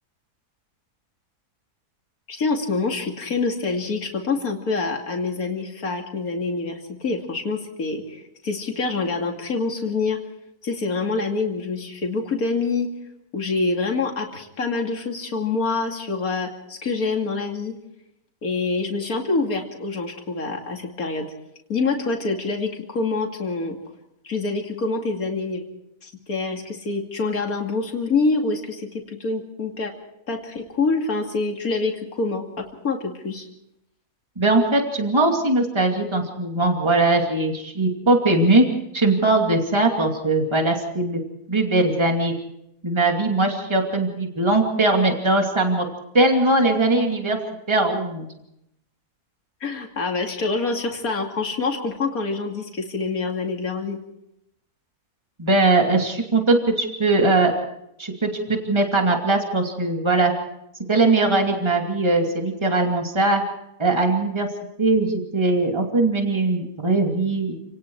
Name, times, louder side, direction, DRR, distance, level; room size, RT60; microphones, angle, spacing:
voice 1, 2.3-10.2 10.6-12.9 13.3-17.7 18.4-21.3 21.7-23.8 24.2-25.6 26.0-29.9 30.3-33.5 49.6-54.0, left 3 dB, 60° left, 2 dB, 3.1 m, -26 dB
voice 2, 34.4-38.7 38.9-41.2 41.5-42.3 42.8-45.9 46.1-47.4 47.7-48.3 55.4-57.5 58.0-60.3 60.9-63.4 63.8-64.5 64.8-67.6, right 2 dB, 15° right, 2 dB, 2.7 m, -20 dB
29.0 x 18.5 x 4.8 m, 0.81 s
omnidirectional pair, 1.7 m